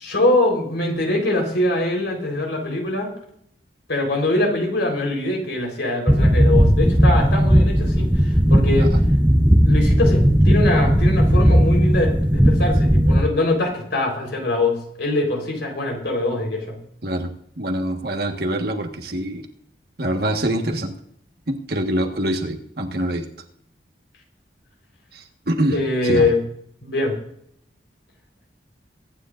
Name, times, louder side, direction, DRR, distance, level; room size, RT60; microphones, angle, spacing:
voice 1, 0.0-3.1 3.9-8.9 9.6-16.8 25.7-26.4 26.8-27.1, left 2 dB, 75° left, 1 dB, 4.1 m, -23 dB
sound 1, 6.1-13.2, equal, 10° right, 0.8 m, -16 dB
voice 2, 17.0-19.4 20.0-20.9 21.5-23.2 25.1-25.8 26.0-26.3, right 1 dB, 55° right, 4 dB, 1.5 m, -25 dB
22.5 x 10.0 x 2.6 m, 0.71 s
head